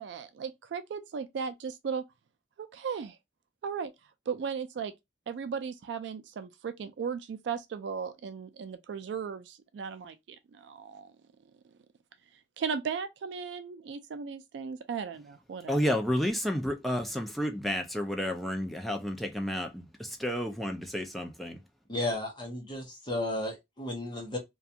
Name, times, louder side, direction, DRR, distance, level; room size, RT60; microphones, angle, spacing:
voice 1, 0.0-2.0 2.6-3.2 3.6-3.9 4.3-4.9 5.3-10.2 10.5-11.1 12.6-15.9, right 6 dB, 70° right, 0.3 m, -36 dB
voice 2, 15.7-21.6, equal, ahead, 0.4 m, -31 dB
voice 3, 21.9-24.4, left 1 dB, 25° left, 0.8 m, -33 dB
2.4 x 2.3 x 2.7 m
head